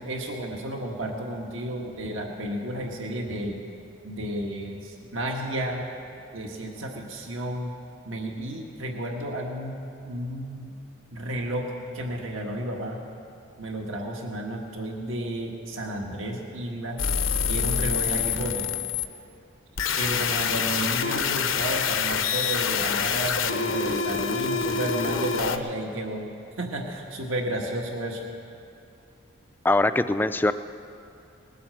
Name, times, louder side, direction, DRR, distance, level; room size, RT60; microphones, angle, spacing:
voice 1, 0.0-3.6 4.0-5.8 6.3-7.7 8.0-10.8 11.1-13.0 13.6-17.0 17.5-18.7 20.0-26.2 26.6-28.2, right 1 dB, 80° right, 1 dB, 1.6 m, -32 dB
sound 1, 17.0-19.0 19.8-25.6, left 6 dB, 80° left, 0.8 m, -26 dB
voice 2, 29.6-30.5, left 2 dB, 10° left, 11 dB, 0.3 m, -22 dB
19.5 x 8.4 x 7.7 m, 2.6 s
head